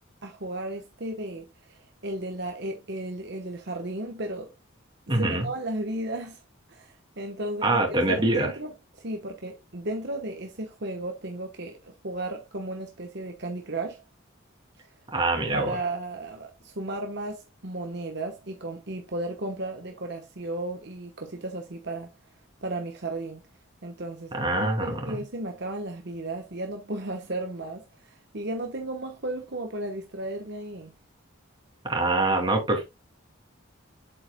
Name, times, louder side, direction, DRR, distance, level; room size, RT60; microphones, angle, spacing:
voice 1, 0.2-4.5 5.2-6.4 6.7-14.0 15.5-22.1 22.6-23.4 23.8-30.9, right 2 dB, 55° right, 1.1 m, -34 dB
voice 2, 5.1-5.5 7.6-8.5 15.1-15.8 24.3-25.2 31.8-32.8, right 2 dB, 25° right, 2.7 m, -24 dB
8.1 x 7.8 x 2.2 m
head